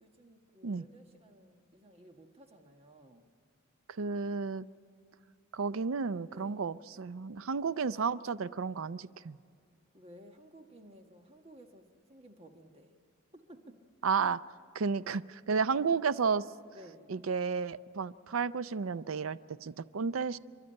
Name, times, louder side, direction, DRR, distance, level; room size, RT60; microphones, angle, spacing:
voice 1, 0.0-3.3 6.3-6.6 9.9-12.9 13.3-13.8 16.7-17.0, equal, 30° right, 4 dB, 1.3 m, -55 dB
voice 2, 4.0-4.7 5.5-9.4 14.0-14.4 14.7-16.4 17.1-20.4, right 5 dB, 75° right, 16 dB, 0.5 m, -32 dB
29.0 x 12.0 x 8.8 m, 2.4 s
head